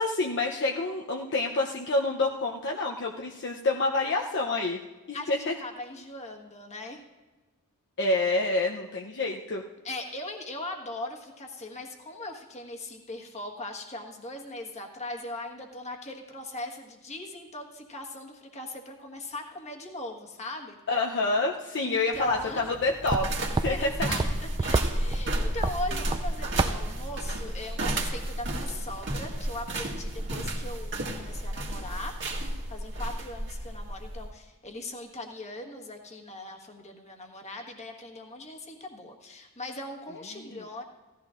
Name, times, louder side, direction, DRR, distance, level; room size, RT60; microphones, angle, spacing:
voice 1, 0.0-4.8 5.1-5.6 8.0-9.6 20.9-23.3 23.6-24.1 40.4-40.6, left 2 dB, 55° left, 0 dB, 0.7 m, -28 dB
voice 2, 5.1-7.0 9.8-20.8 21.8-22.8 23.0-23.1 23.7-32.2 32.7-40.8, left 2 dB, 30° left, 1 dB, 1.4 m, -39 dB
sound 1, 22.1-27.3, right 3 dB, 20° right, 0.3 m, -32 dB
sound 2, 23.1-34.3, right 1 dB, 55° right, 1.8 m, -32 dB
17.0 x 14.0 x 2.5 m, 1.2 s
head